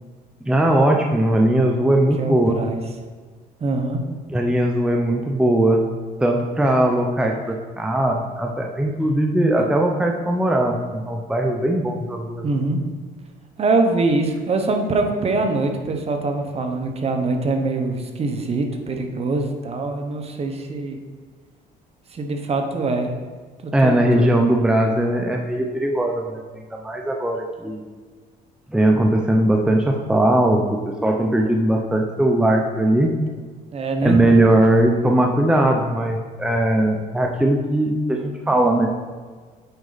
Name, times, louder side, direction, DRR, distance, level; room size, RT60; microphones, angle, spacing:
voice 1, 0.5-2.6 4.3-5.8 6.2-12.6 23.7-27.8 28.7-33.1 34.0-38.9, right 1 dB, 5° right, 2 dB, 0.6 m, -19 dB
voice 2, 2.2-2.8 3.6-4.0 12.4-12.8 13.6-21.0 22.1-23.1 23.6-24.3 33.7-34.2, right 3 dB, 35° right, 4 dB, 1.0 m, -23 dB
8.0 x 5.2 x 4.0 m, 1.5 s
cardioid pair, 110°, 17 cm